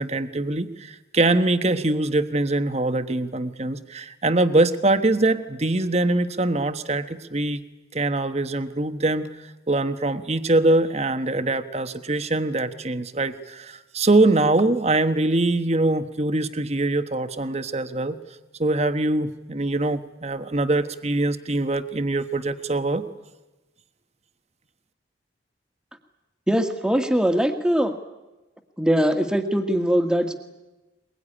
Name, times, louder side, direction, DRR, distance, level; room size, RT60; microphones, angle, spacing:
voice 1, 0.0-7.6 7.9-18.2 18.6-23.1, right 2 dB, 35° right, 10 dB, 1.2 m, -23 dB
voice 2, 26.5-28.0 28.8-30.3, equal, 5° right, 6 dB, 1.7 m, -21 dB
22.0 x 22.0 x 10.0 m, 1.1 s
head